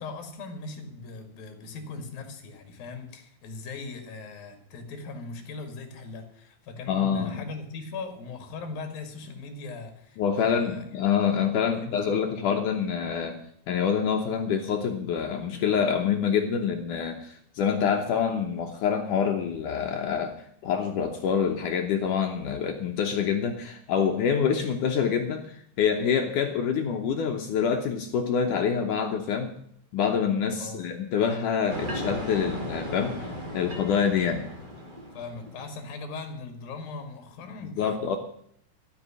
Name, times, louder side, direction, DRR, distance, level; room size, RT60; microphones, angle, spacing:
voice 1, 0.0-10.8 11.7-12.4 30.5-30.8 35.1-38.2, left 3 dB, 60° left, 5 dB, 3.5 m, -39 dB
voice 2, 6.9-7.4 10.2-13.4 13.7-20.3 20.6-29.5 29.9-34.4 37.6-38.2, left 7 dB, 75° left, 3 dB, 1.8 m, -26 dB
sound 1, 31.7-35.8, equal, 25° right, 1.0 m, -36 dB
14.0 x 6.7 x 9.9 m, 0.67 s
omnidirectional pair, 5.1 m